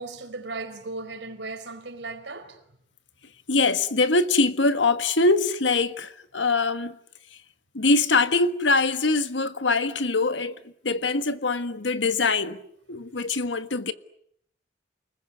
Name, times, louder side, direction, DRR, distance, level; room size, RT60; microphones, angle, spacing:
voice 1, 0.0-2.6, right 3 dB, 85° right, 4.7 m, -36 dB
voice 2, 3.5-7.0 7.7-12.6 12.9-13.9, left 3 dB, 90° left, 1.6 m, -23 dB
29.5 x 20.5 x 9.8 m
head